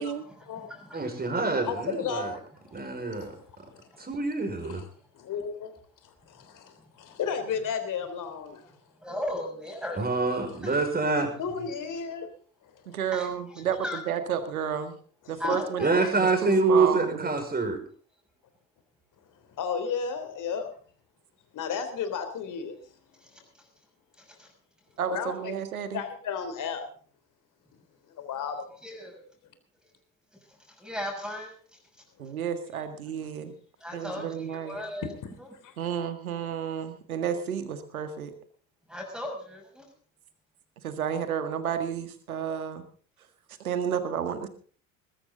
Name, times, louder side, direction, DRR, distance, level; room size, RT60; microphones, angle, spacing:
voice 1, 0.2-1.6 2.7-4.1 6.4-7.2 9.0-10.8 11.6-11.7 13.1-14.0 15.4-16.1 23.2-23.7 24.2-24.5 28.8-29.2 30.3-32.0 32.7-32.8 33.8-35.1 35.4-35.5 38.9-39.9, left 1 dB, ahead, 1 dB, 6.3 m, -39 dB
voice 2, 0.9-2.3 2.7-3.3 4.0-4.8 10.0-11.3 15.8-17.8, right 3 dB, 20° right, 5 dB, 5.5 m, -26 dB
voice 3, 1.7-2.3 3.1-3.3 4.7-4.9 5.1-5.7 6.4-8.6 11.4-12.3 12.9-13.0 15.2-15.4 19.6-20.7 21.5-22.8 25.1-25.6 25.9-26.8 28.1-28.7 33.2-33.3, left 6 dB, 45° left, 9 dB, 3.5 m, -33 dB
voice 4, 12.9-13.8 14.1-14.9 15.3-15.8 16.2-17.3 25.0-26.0 32.2-33.5 33.9-34.8 35.8-38.3 40.8-42.8 43.6-44.5, right 8 dB, 75° right, 9 dB, 1.8 m, -31 dB
21.0 x 13.5 x 3.9 m, 0.43 s
figure-of-eight pair, 60°, 42 cm